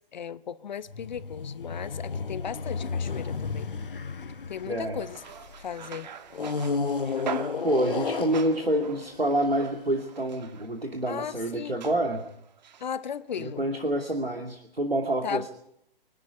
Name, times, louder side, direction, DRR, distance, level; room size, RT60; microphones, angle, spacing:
voice 1, 0.1-3.7 4.5-5.2 5.6-6.1 11.1-11.8 12.8-13.6 15.2-15.5, left 8 dB, 50° left, 0.8 m, -36 dB
sound 1, 0.9-5.6 6.3-9.7, left 4 dB, 65° left, 1.3 m, -33 dB
voice 2, 4.7-5.0 7.6-12.2 13.4-15.5, right 1 dB, 85° right, 2.7 m, -27 dB
sound 2, 5.0-12.9 13.3-13.4, right 7 dB, 50° right, 1.8 m, -43 dB
25.0 x 12.5 x 9.5 m
figure-of-eight pair, 125°, 29 cm